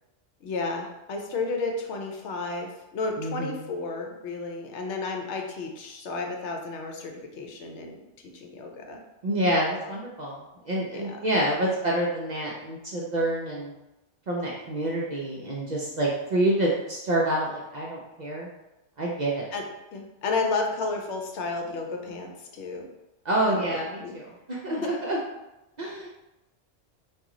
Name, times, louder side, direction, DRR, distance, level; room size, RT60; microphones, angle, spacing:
voice 1, 0.4-8.0 8.3-9.0 10.9-11.2 19.5-19.6 19.9-22.8 23.5-24.1 24.8-24.9, left 3 dB, 75° left, 2 dB, 0.9 m, -32 dB
voice 2, 3.2-3.6 9.2-13.7 14.3-18.5 19.0-19.5 23.2-25.2 25.8-26.1, right 1 dB, 55° right, -4 dB, 0.5 m, -27 dB
2.9 x 2.3 x 3.6 m, 0.97 s
omnidirectional pair, 1.2 m